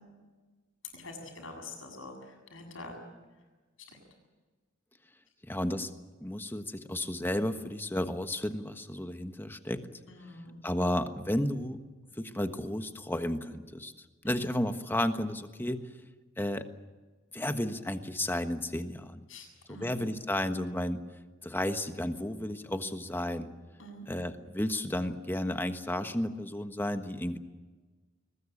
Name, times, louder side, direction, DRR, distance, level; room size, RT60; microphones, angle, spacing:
voice 1, 0.9-3.0 3.9-4.0 10.1-10.6 14.2-14.3 19.3-20.0 23.8-24.1, left 2 dB, 70° left, 3 dB, 7.6 m, -46 dB
voice 2, 5.4-5.9 6.2-9.8 10.6-11.8 12.2-15.8 16.4-16.7 17.3-19.2 19.7-21.0 21.4-23.5 24.1-27.4, left 1 dB, 10° left, 8 dB, 1.3 m, -32 dB
22.5 x 20.5 x 8.5 m, 1.3 s
head